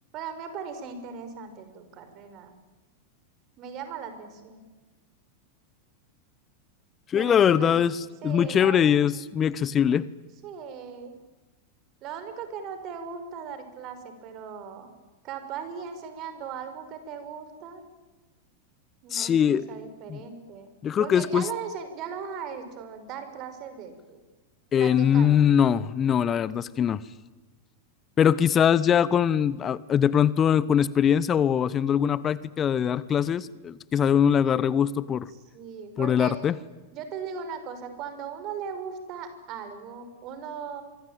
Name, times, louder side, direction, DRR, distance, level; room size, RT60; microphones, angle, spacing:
voice 1, 0.1-2.6 3.6-4.7 7.1-7.8 8.2-8.9 10.4-11.1 12.0-14.9 15.2-17.8 19.0-20.7 21.0-24.2 24.8-25.4 35.5-36.5 36.9-40.8, right 7 dB, 40° right, 9 dB, 5.7 m, -38 dB
voice 2, 7.1-10.1 19.1-19.7 20.1-20.2 20.8-21.5 24.7-27.0 28.2-35.3 36.0-36.6, left 8 dB, 25° left, 19 dB, 0.9 m, -22 dB
25.5 x 24.5 x 9.1 m, 1.2 s
figure-of-eight pair, 90°, 0 cm